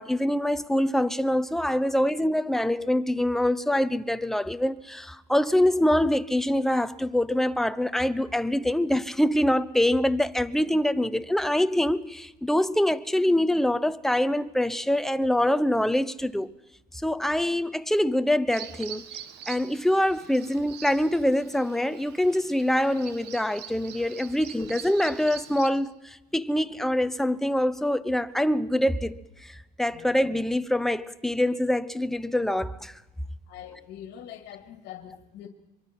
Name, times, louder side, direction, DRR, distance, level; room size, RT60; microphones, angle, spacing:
voice 1, 0.0-16.5 16.9-19.0 19.5-32.9, left 1 dB, ahead, 0.8 m, -25 dB
Bird vocalization bird call bird song, 18.5-25.7, right 10 dB, 80° right, 1.7 m, -44 dB
voice 2, 33.5-35.5, left 10 dB, 75° left, 2.2 m, -43 dB
23.5 x 23.5 x 6.0 m
cardioid pair, 110°, 17 cm